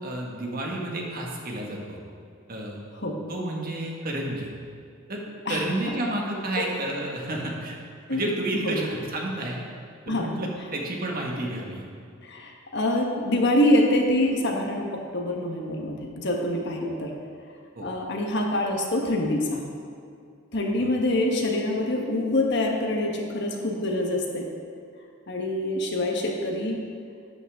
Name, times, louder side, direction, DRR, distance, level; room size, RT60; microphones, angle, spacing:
voice 1, 0.0-2.0 2.5-2.8 3.3-4.5 5.1-5.2 5.5-7.7 8.1-9.6 10.1-11.8 17.7-17.9 20.8-20.9, right 1 dB, 45° right, -1 dB, 1.6 m, -30 dB
voice 2, 12.2-17.1 17.8-19.6 20.5-24.4 25.3-26.8, left 1 dB, 60° left, 1 dB, 1.4 m, -25 dB
12.0 x 9.0 x 3.7 m, 2.4 s
head